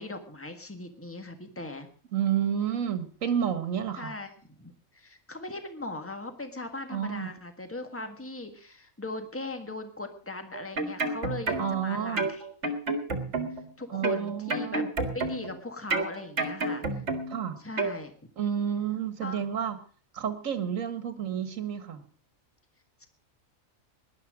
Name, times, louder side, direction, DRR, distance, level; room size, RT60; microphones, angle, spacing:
voice 1, 0.0-1.9 4.0-12.7 13.8-14.8 15.1-17.0 17.6-18.1 19.2-19.4 23.0-23.1, left 2 dB, 10° left, 6 dB, 1.6 m, -39 dB
voice 2, 2.1-4.1 6.9-7.3 11.6-12.3 13.9-14.9 17.3-17.6 18.4-19.8 20.1-22.0, right 8 dB, 70° right, 10 dB, 1.8 m, -30 dB
sound 1, 10.5-11.8 12.2-13.7 14.0-15.6 15.9-17.4 17.8-18.0, right 3 dB, 55° right, 1.9 m, -30 dB
18.0 x 11.5 x 5.0 m, 0.42 s
omnidirectional pair, 1.4 m